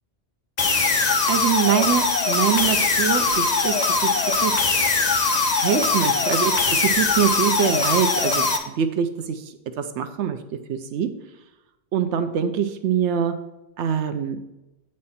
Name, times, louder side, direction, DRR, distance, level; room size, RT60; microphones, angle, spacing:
sound 1, 0.6-8.6, left 3 dB, 40° left, 0.8 m, -21 dB
voice 1, 1.0-3.8 4.0-4.6 5.6-9.4 9.8-10.4 10.7-11.1 11.9-13.3 13.8-14.4, right 8 dB, 85° right, 9 dB, 0.9 m, -24 dB
8.7 x 4.3 x 5.6 m, 0.98 s
omnidirectional pair, 1.1 m